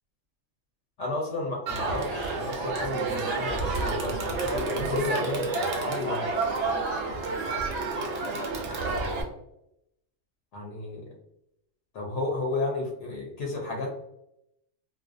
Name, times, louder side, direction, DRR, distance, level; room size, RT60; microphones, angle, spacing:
voice 1, 1.0-6.3 10.5-11.0 11.9-13.9, left 2 dB, 80° left, -1 dB, 0.9 m, -32 dB
Crowd, 1.7-9.2, right 3 dB, 75° right, 0.8 m, -29 dB
2.5 x 2.1 x 2.4 m, 0.80 s
omnidirectional pair, 1.2 m